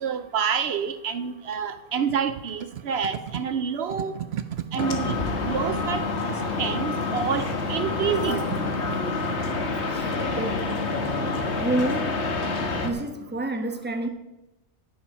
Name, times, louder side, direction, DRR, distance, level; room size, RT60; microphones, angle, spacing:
voice 1, 0.0-4.4 4.7-5.2 5.4-6.0 6.6-8.5, right 7 dB, 70° right, 11 dB, 0.8 m, -27 dB
sound 1, 4.8-12.9, left 3 dB, 75° left, 1.6 m, -27 dB
voice 2, 9.9-10.7 11.1-11.2 11.6-12.1 12.8-14.1, right 1 dB, 10° right, 6 dB, 1.0 m, -29 dB
10.0 x 9.7 x 5.5 m, 0.98 s
omnidirectional pair, 1.2 m